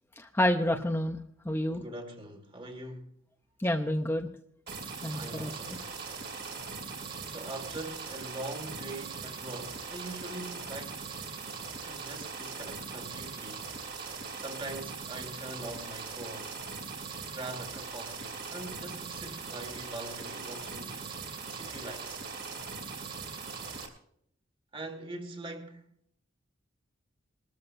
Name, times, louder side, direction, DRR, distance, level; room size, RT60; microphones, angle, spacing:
voice 1, 0.2-1.2 1.4-1.8 3.6-4.3 5.0-5.5, left 1 dB, 10° left, 0.7 m, -28 dB
voice 2, 1.7-3.2 5.1-6.1 7.2-11.0 11.8-13.7 14.0-16.6 17.3-21.1 21.5-22.2 24.7-25.9, right 2 dB, 25° right, 2.0 m, -43 dB
sound 1, 4.7-23.9, right 5 dB, 55° right, 2.9 m, -40 dB
21.0 x 13.5 x 2.6 m
head